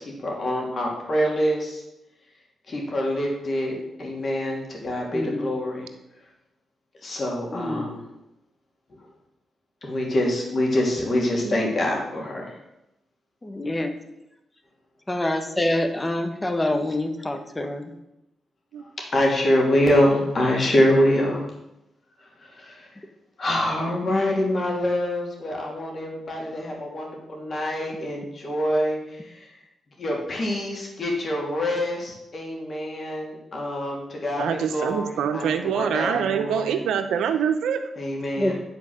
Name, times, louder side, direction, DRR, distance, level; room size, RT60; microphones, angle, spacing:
voice 1, 0.0-1.8 2.7-5.9 7.0-8.0 9.8-12.5 19.1-21.4 22.4-22.9 23.4-29.5 30.0-36.8 38.0-38.6, left 1 dB, 50° left, -1 dB, 2.9 m, -25 dB
voice 2, 5.1-5.5 7.5-7.9 13.4-14.0 15.1-17.8 24.1-24.2 38.4-38.5, left 1 dB, 20° left, 7 dB, 1.3 m, -26 dB
voice 3, 34.4-37.8, right 8 dB, 85° right, 8 dB, 0.8 m, -25 dB
9.8 x 4.5 x 6.5 m, 0.89 s
cardioid pair, 65°, 0 cm